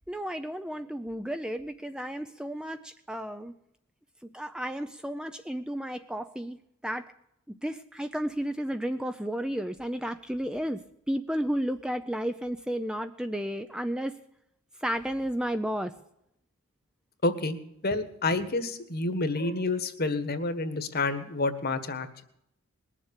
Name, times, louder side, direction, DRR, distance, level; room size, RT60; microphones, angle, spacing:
voice 1, 0.1-3.5 4.2-6.6 6.8-7.1 7.5-10.8 11.1-14.1 14.8-15.9, equal, 5° right, 8 dB, 0.5 m, -32 dB
voice 2, 17.2-17.6 17.8-22.2, left 2 dB, 45° left, 10 dB, 1.5 m, -29 dB
20.5 x 7.5 x 8.2 m, 0.78 s
head